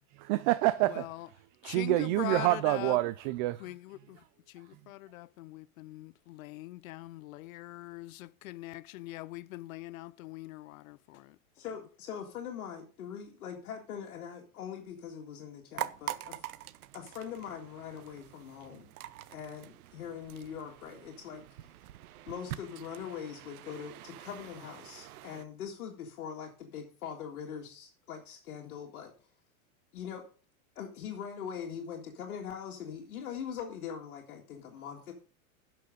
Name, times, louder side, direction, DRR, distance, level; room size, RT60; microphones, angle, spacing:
voice 1, 0.2-1.1 1.6-3.6, right 17 dB, 35° right, 0.4 m, -27 dB
voice 2, 0.9-1.3 1.6-3.0 3.6-11.4, left 17 dB, 70° left, 0.6 m, -42 dB
voice 3, 11.6-16.4 16.9-18.9 19.3-21.4 22.3-29.3 29.9-30.3 30.8-35.1, left 7 dB, 90° left, 2.0 m, -42 dB
sound 1, 15.7-25.4, right 14 dB, 85° right, 0.8 m, -45 dB
11.5 x 6.1 x 5.0 m
supercardioid pair, 145°, 43 cm